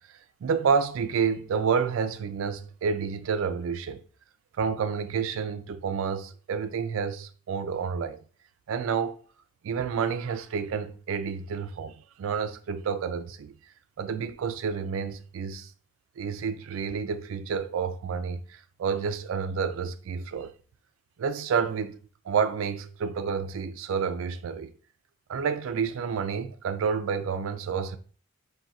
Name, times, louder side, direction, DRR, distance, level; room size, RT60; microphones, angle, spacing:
voice 1, 0.4-4.0 4.6-8.2 8.7-9.2 9.6-13.5 14.0-15.7 16.2-20.5 21.2-22.0 22.3-24.7 25.3-28.0, right 6 dB, 80° right, 0.3 m, -29 dB
2.4 x 2.2 x 4.0 m
head